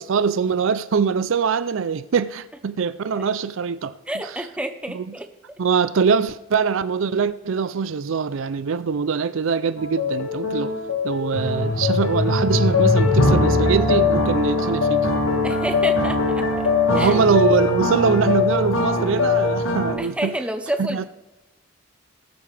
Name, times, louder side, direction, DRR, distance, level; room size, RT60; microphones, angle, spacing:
voice 1, 0.0-3.9 4.9-5.0 5.6-10.7 11.0-15.1 16.9-20.3 20.8-21.0, right 6 dB, 70° right, 0.4 m, -22 dB
voice 2, 4.1-5.3 15.4-17.1 20.0-21.0, right 1 dB, 5° right, 0.8 m, -29 dB
sound 1, 9.8-19.9, left 3 dB, 85° left, 1.9 m, -21 dB
20.0 x 8.5 x 3.3 m
head